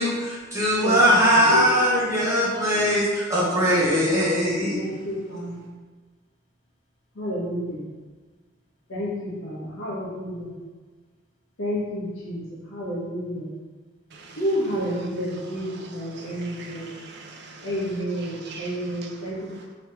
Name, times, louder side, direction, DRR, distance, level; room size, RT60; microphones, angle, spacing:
voice 1, 0.0-4.8, equal, 15° right, -8 dB, 1.2 m, -20 dB
voice 2, 4.7-5.7 7.2-7.8 8.9-10.5 11.6-13.5 14.4-16.9 17.6-19.5, equal, 70° left, -5 dB, 1.0 m, -30 dB
voice 3, 14.1-14.4 14.8-19.7, right 1 dB, 60° right, 2 dB, 0.5 m, -41 dB
3.3 x 3.1 x 3.0 m, 1.4 s
head